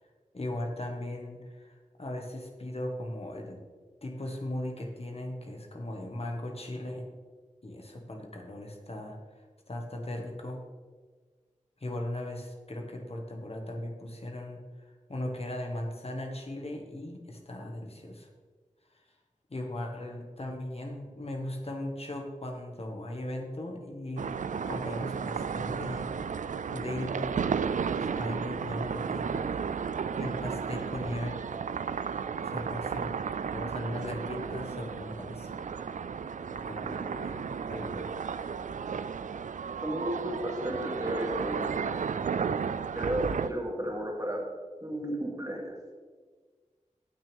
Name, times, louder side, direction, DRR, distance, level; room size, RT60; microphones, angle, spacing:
voice 1, 0.3-3.6 4.0-7.0 7.6-10.6 11.8-18.3 18.9-19.0 19.5-24.3 24.7-26.1 26.7-27.4 28.0-29.5 30.2-31.4 32.4-33.2 33.5-35.7 36.5-38.1, left 1 dB, 50° left, 1 dB, 1.5 m, -38 dB
sound 1, 24.2-43.5, right 6 dB, 75° right, 0.4 m, -33 dB
voice 2, 39.8-41.6 43.0-44.4 44.8-45.8, equal, 25° right, -1 dB, 2.5 m, -33 dB
18.0 x 6.2 x 3.5 m, 1.5 s
wide cardioid pair, 65°, 13 cm